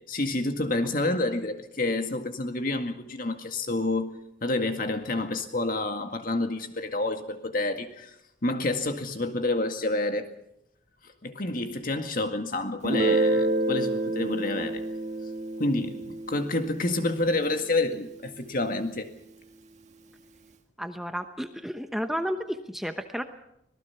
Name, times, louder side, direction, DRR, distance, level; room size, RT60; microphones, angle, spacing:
voice 1, 0.1-4.1 4.4-8.1 8.4-10.3 11.2-14.8 15.6-19.1, left 2 dB, 50° left, 2.0 m, -28 dB
Guitar, 12.8-18.3, right 2 dB, 40° right, 1.9 m, -29 dB
voice 2, 20.8-23.2, equal, ahead, 0.9 m, -32 dB
25.0 x 19.0 x 5.9 m
head